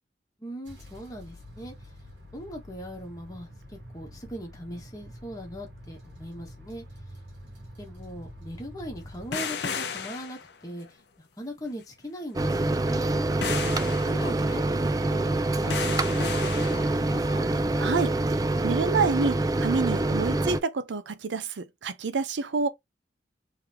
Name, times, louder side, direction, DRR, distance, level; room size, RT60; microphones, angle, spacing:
voice 1, 0.4-1.7 2.3-6.8 7.4-13.1 13.9-15.2 15.5-17.6, equal, 20° left, 1.2 m, -40 dB
sound 1, 0.6-9.3, equal, 75° right, 1.7 m, -46 dB
sound 2, 9.3-10.9 13.4-17.4 18.4-18.5, left 6 dB, 70° left, 0.6 m, -35 dB
Microwave oven, 12.3-20.6, right 2 dB, 20° right, 0.3 m, -26 dB
voice 2, 17.8-18.4 18.6-22.7, right 4 dB, 90° right, 0.6 m, -28 dB
3.6 x 3.2 x 2.9 m
head